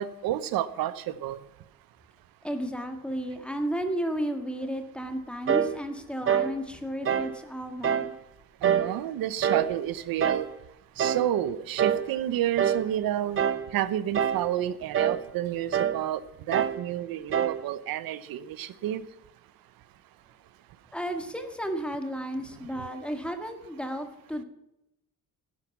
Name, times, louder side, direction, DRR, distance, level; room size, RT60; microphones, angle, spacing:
voice 1, 0.0-1.4 8.6-10.5 11.0-13.4 13.7-16.2 16.5-19.1 22.8-22.9, right 12 dB, 90° right, 15 dB, 0.9 m, -30 dB
voice 2, 2.4-8.1 20.9-24.4, equal, 5° left, 6 dB, 1.7 m, -33 dB
sound 1, 5.5-5.8 6.3-6.5 7.1-7.3 7.8-8.1 8.6-8.9 9.4-9.7 10.2-10.5 11.0-11.3 11.8-12.1 12.6-12.9 13.4-13.7 14.1-14.5 14.9-15.2 15.7-16.0 16.5-16.8 17.3-17.6, right 8 dB, 35° right, 0.9 m, -25 dB
16.5 x 10.5 x 5.9 m, 0.87 s
cardioid pair, 140°, 34 cm